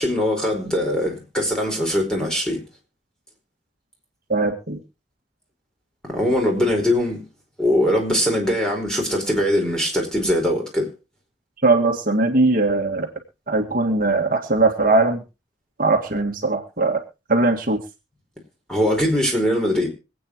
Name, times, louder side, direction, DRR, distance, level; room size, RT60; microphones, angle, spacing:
voice 1, 0.0-2.6 6.1-7.2 7.6-10.9 18.7-19.9, left 1 dB, 5° left, 4.7 m, -21 dB
voice 2, 4.3-4.8 11.6-13.1 13.5-15.2 15.8-17.0 17.3-17.8, right 3 dB, 50° right, 1.8 m, -20 dB
25.5 x 8.8 x 3.0 m
head